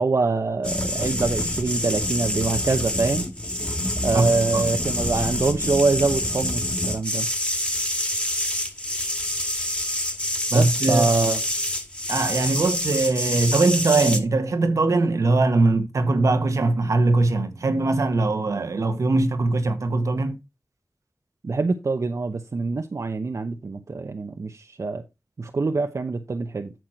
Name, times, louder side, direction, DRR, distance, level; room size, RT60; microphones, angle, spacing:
voice 1, 0.0-3.2 4.0-7.3 10.5-11.4 21.4-25.0 25.4-26.7, right 3 dB, 70° right, 0.8 m, -24 dB
sound 1, 0.6-14.2, left 1 dB, 20° left, 2.3 m, -26 dB
voice 2, 4.1-4.6 10.5-11.1 12.1-20.4, right 3 dB, 85° right, 1.3 m, -21 dB
9.2 x 6.2 x 4.4 m
cardioid pair, 40°, 5 cm